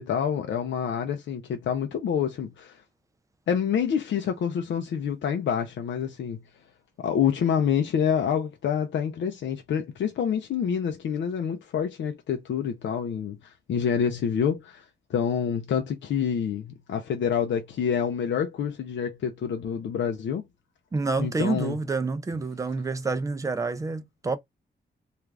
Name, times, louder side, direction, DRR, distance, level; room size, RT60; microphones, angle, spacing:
voice 1, 0.0-2.8 3.5-6.4 7.0-14.8 15.1-20.4 21.2-21.8, left 8 dB, 80° left, 0.5 m, -27 dB
voice 2, 20.9-24.4, right 3 dB, 15° right, 0.3 m, -28 dB
2.4 x 2.3 x 3.1 m
wide cardioid pair, 155°, 19 cm